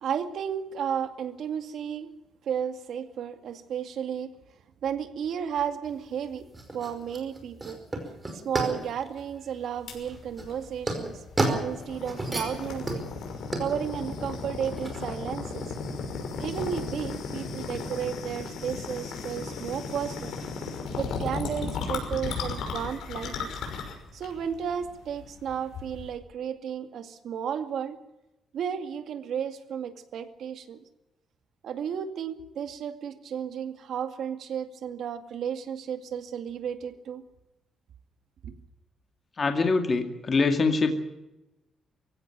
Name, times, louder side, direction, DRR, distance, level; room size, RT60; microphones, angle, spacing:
voice 1, 0.0-2.1 2.4-4.3 4.8-6.5 6.7-7.8 8.4-13.0 13.6-15.7 16.4-20.3 21.0-23.5 24.1-28.0 28.5-30.8 31.6-37.2 38.4-38.5, right 8 dB, 65° right, 8 dB, 2.2 m, -33 dB
sound 1, 5.8-15.1, right 2 dB, 15° right, 5.1 m, -33 dB
sound 2, 9.9-26.1, left 4 dB, 80° left, 6.0 m, -36 dB
voice 2, 39.4-40.9, left 4 dB, 30° left, 5 dB, 2.2 m, -24 dB
23.5 x 16.0 x 9.0 m, 0.98 s
cardioid pair, 155°, 0 cm